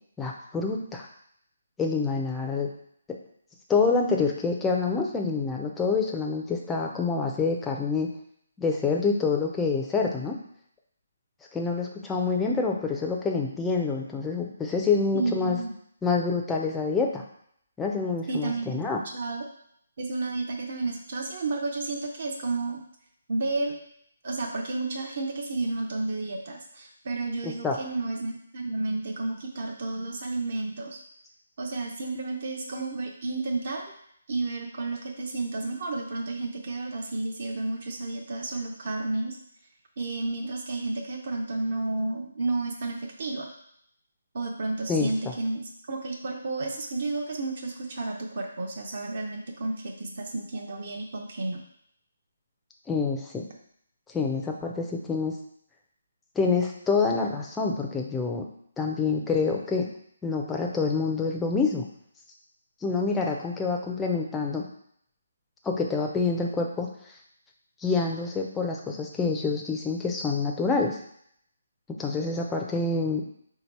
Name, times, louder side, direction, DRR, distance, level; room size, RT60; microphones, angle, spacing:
voice 1, 0.2-1.1 1.8-2.7 3.7-8.1 8.6-10.4 11.5-15.6 16.0-17.2 17.8-19.0 27.4-27.8 44.9-45.1 52.9-53.5 54.1-55.3 56.4-58.4 58.8-59.9 60.2-61.8 62.8-64.6 65.6-66.9 67.8-71.0 72.0-73.2, left 4 dB, 5° left, 0 dB, 0.4 m, -27 dB
voice 2, 15.1-15.7 18.3-18.8 19.1-19.4 20.0-22.8 23.3-23.8 24.2-31.0 31.6-33.8 34.3-39.4 40.0-43.5 44.3-45.6 45.9-51.6, right 2 dB, 45° right, 1 dB, 0.6 m, -31 dB
3.6 x 2.8 x 4.6 m, 0.68 s
hypercardioid pair, 170°, 0 cm